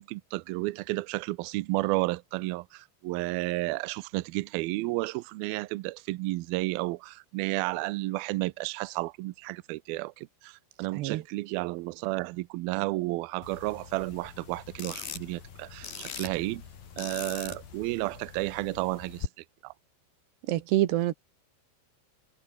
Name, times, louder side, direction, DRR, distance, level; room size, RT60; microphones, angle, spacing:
voice 1, 0.0-16.6 17.0-19.7, right 21 dB, 90° right, 2.1 m, -32 dB
sound 1, 13.4-19.3, left 7 dB, 55° left, 4.9 m, -42 dB
voice 2, 20.5-21.1, right 15 dB, 75° right, 3.2 m, -26 dB
omnidirectional pair, 5.2 m